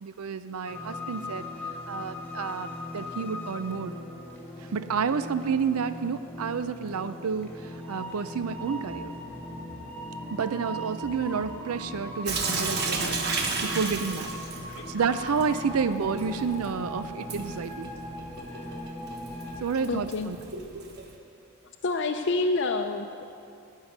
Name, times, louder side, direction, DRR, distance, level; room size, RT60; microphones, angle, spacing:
voice 1, 0.0-1.5 1.9-3.9 4.6-9.1 10.3-13.2 13.6-14.3 14.9-17.9 19.6-20.4, right 6 dB, 85° right, 12 dB, 0.5 m, -30 dB
sound 1, 0.7-19.6, left 1 dB, 10° left, 1.7 m, -40 dB
sound 2, 8.4-20.4, equal, 20° right, 1.5 m, -45 dB
Sink (filling or washing) / Drip, 12.3-21.2, right 4 dB, 50° right, 1.2 m, -34 dB
voice 2, 19.6-20.3 21.8-23.3, left 3 dB, 55° left, 5 dB, 0.5 m, -29 dB
14.0 x 5.7 x 9.3 m, 2.4 s
head